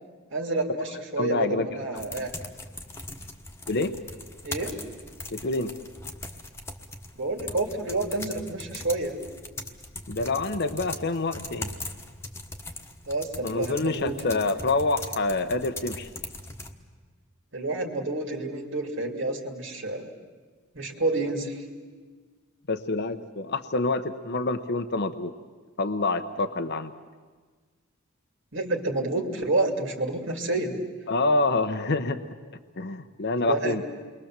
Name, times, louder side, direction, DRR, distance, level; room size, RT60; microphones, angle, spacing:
voice 1, 0.3-2.3 4.4-4.8 7.2-9.2 13.1-14.5 17.5-20.1 20.7-21.6 28.5-30.8 33.5-33.8, right 2 dB, 60° right, 3 dB, 2.4 m, -29 dB
voice 2, 1.2-1.7 1.9-2.0 3.7-4.0 5.3-5.7 10.1-11.7 13.4-16.1 22.7-25.3 25.8-26.9 31.1-32.2 32.8-33.8, left 2 dB, 55° left, 9 dB, 0.9 m, -27 dB
sound 1, 2.0-16.7, left 2 dB, 10° left, 1.4 m, -40 dB
28.5 x 22.5 x 7.4 m, 1.5 s
head